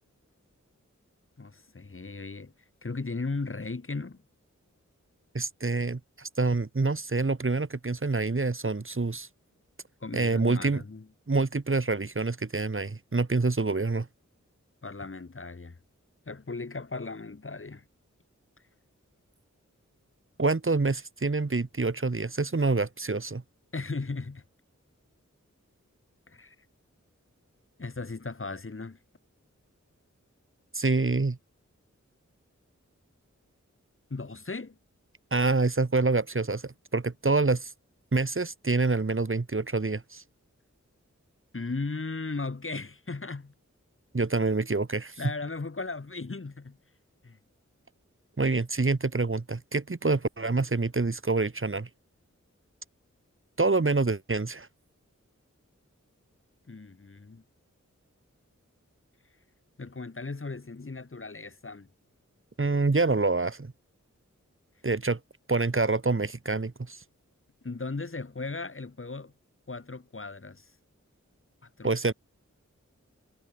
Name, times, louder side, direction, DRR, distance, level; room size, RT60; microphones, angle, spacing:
voice 1, 1.4-2.5 2.8-4.2 10.0-11.1 14.8-15.8 16.3-17.8 23.7-24.4 26.3-26.6 27.8-29.0 34.1-34.8 41.5-43.5 45.2-46.8 47.2-47.4 56.7-57.4 59.8-61.9 67.6-69.3 69.7-70.7 71.6-71.9, left 3 dB, 45° left, 1.3 m, -37 dB
voice 2, 5.3-9.3 10.1-10.8 11.3-14.1 20.4-23.4 30.7-31.4 35.3-37.7 38.1-40.2 44.1-45.1 48.4-51.9 53.6-54.7 62.6-63.7 64.8-65.2 65.5-67.0 71.8-72.1, right 3 dB, 45° right, 1.4 m, -26 dB
wide cardioid pair, 40°, 30 cm